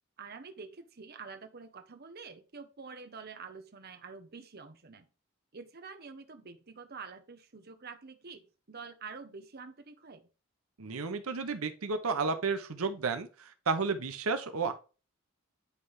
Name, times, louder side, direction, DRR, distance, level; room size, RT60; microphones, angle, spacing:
voice 1, 0.2-5.1 5.5-10.3, right 4 dB, 50° right, 0.9 m, -47 dB
voice 2, 10.8-14.7, right 4 dB, 85° right, 0.9 m, -32 dB
9.8 x 3.3 x 5.6 m
head